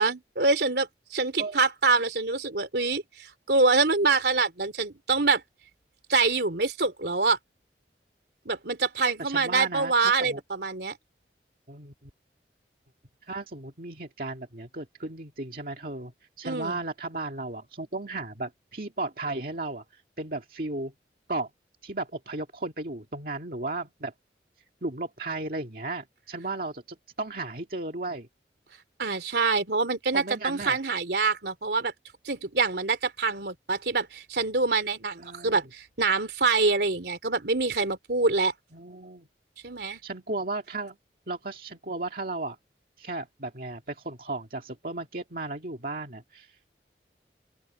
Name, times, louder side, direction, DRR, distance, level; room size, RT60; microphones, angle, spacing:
voice 1, 0.0-5.4 6.1-7.4 8.4-11.0 16.4-16.8 29.0-31.9 32.2-38.5 39.6-40.0, right 3 dB, 70° right, 3.0 m, -25 dB
voice 2, 9.2-10.4 11.7-12.1 13.3-16.1 16.4-20.9 21.3-21.5 21.8-24.1 24.8-28.3 30.1-30.8 35.2-35.6 38.7-39.3 40.0-41.0 41.3-42.6 43.0-46.7, right 2 dB, 55° right, 2.0 m, -35 dB
open air
head